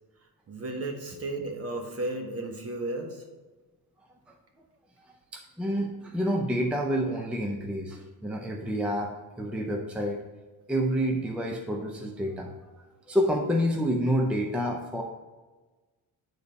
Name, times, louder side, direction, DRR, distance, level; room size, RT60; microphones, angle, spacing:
voice 1, 0.5-3.2, right 2 dB, 40° right, 3 dB, 1.2 m, -34 dB
voice 2, 5.1-10.2 10.7-12.5 13.1-15.0, equal, 5° right, 1 dB, 0.5 m, -28 dB
8.8 x 4.1 x 5.2 m, 1.3 s
cardioid pair, 170°, 38 cm